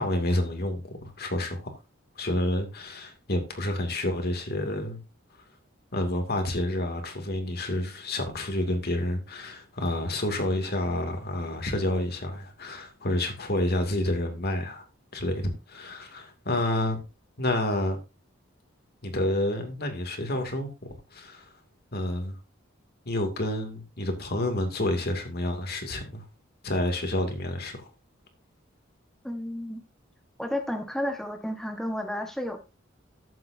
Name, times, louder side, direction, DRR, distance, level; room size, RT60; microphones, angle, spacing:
voice 1, 0.0-1.7 2.2-5.0 5.9-14.8 15.1-17.0 17.4-18.0 19.0-20.7 21.1-21.5 21.9-22.4 23.1-26.3 26.6-27.9, left 1 dB, 55° left, 2.4 m, -29 dB
voice 2, 29.2-29.8 30.4-32.6, left 1 dB, ahead, 1.3 m, -32 dB
14.5 x 7.7 x 2.7 m
head